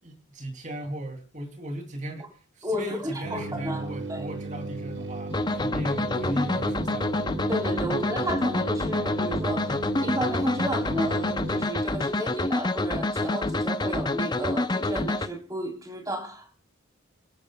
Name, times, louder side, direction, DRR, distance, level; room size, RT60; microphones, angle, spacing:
voice 1, 0.0-7.1 7.9-8.0, right 1 dB, 35° right, 4 dB, 2.9 m, -37 dB
voice 2, 2.6-3.8 4.1-4.2 7.5-16.5, equal, 15° right, 2 dB, 3.5 m, -32 dB
sound 1, 3.2-11.7, right 2 dB, 60° right, 1.2 m, -36 dB
sound 2, 5.3-15.3, left 2 dB, 20° left, 0.6 m, -27 dB
29.5 x 12.0 x 2.3 m, 0.36 s
head